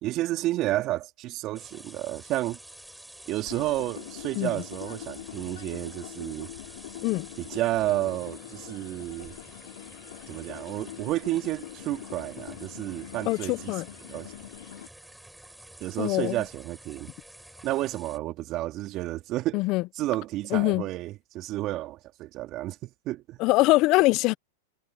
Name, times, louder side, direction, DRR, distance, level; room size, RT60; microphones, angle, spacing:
voice 1, 0.0-2.6 3.3-6.5 7.4-9.4 10.3-13.7 14.1-14.3 15.8-17.1 17.6-19.6 20.0-23.4, right 16 dB, 40° right, 3.8 m, -31 dB
sound 1, 1.5-18.2, right 1 dB, 5° right, 7.1 m, -49 dB
sound 2, 3.5-14.9, left 13 dB, 70° left, 3.7 m, -43 dB
voice 2, 13.3-13.9 16.0-16.4 19.5-19.8 20.5-20.9 23.4-24.3, left 21 dB, 45° left, 0.9 m, -23 dB
hypercardioid pair, 115°, 0 cm